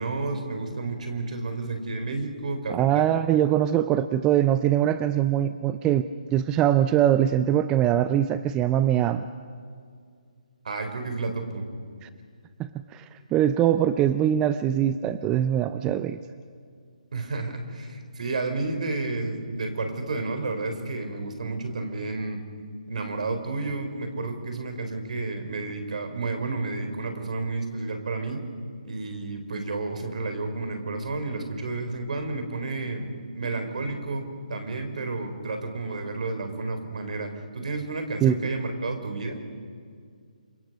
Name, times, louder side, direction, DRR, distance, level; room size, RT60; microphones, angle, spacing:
voice 1, 0.0-3.1 10.6-11.7 17.1-22.4 22.9-28.4 28.8-39.4, right 3 dB, 60° right, 6 dB, 4.1 m, -31 dB
voice 2, 2.7-9.3 12.0-12.1 12.6-13.0 13.3-16.2 38.2-38.3, right 11 dB, 15° right, 13 dB, 0.5 m, -22 dB
27.5 x 24.0 x 5.4 m, 2.2 s
figure-of-eight pair, 150°, 4 cm